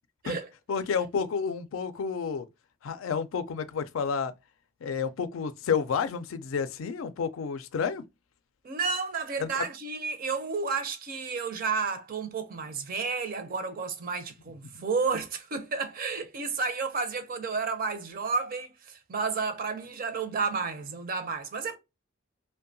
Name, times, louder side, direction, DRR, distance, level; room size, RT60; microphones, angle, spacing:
voice 1, 0.7-2.5 2.8-4.3 4.8-8.0 9.4-9.6 14.7-14.8, left 6 dB, 90° left, 0.4 m, -30 dB
voice 2, 8.6-21.8, right 4 dB, 45° right, 0.5 m, -31 dB
2.6 x 2.1 x 2.5 m
head